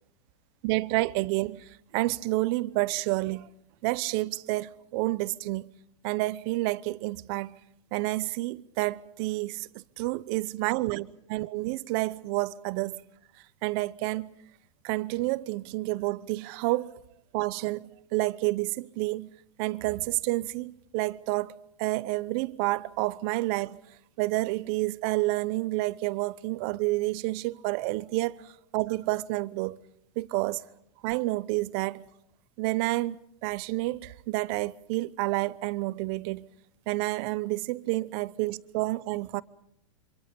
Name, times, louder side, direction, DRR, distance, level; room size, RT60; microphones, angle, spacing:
voice 1, 0.6-3.5 3.8-5.7 6.0-7.6 7.9-13.0 13.6-14.3 14.8-16.9 17.3-19.3 19.6-23.8 24.2-29.8 30.2-30.6 31.0-32.0 32.6-36.5 36.9-39.4, right 20 dB, 50° right, 0.9 m, -29 dB
28.5 x 25.5 x 5.4 m
hypercardioid pair, 125°, 16 cm